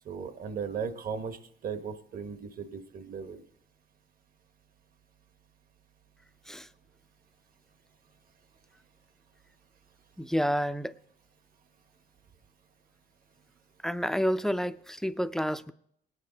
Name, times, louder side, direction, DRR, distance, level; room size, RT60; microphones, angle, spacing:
voice 1, 0.0-3.4, right 6 dB, 50° right, 1.1 m, -37 dB
voice 2, 10.2-10.9 13.8-15.7, equal, ahead, 0.4 m, -29 dB
19.5 x 9.5 x 3.9 m
cardioid pair, 120°, 19 cm